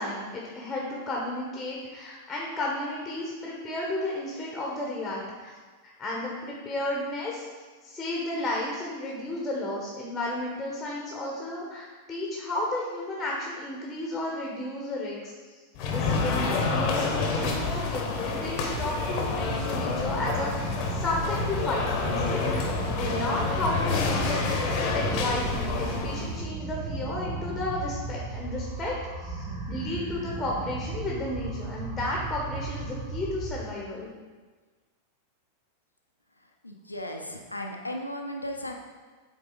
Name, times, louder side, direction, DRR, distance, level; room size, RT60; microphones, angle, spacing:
voice 1, 0.0-5.5 6.0-7.5 7.8-15.3 15.9-34.1, left 1 dB, 15° left, -2 dB, 1.2 m, -33 dB
sound 1, 15.8-26.4, left 4 dB, 40° left, 1.0 m, -28 dB
sound 2, 18.6-33.6, right 3 dB, 60° right, 1.9 m, -35 dB
voice 2, 36.6-38.7, left 1 dB, 85° left, 2 dB, 0.6 m, -35 dB
8.0 x 3.8 x 4.0 m, 1.4 s
figure-of-eight pair, 90°, 0 cm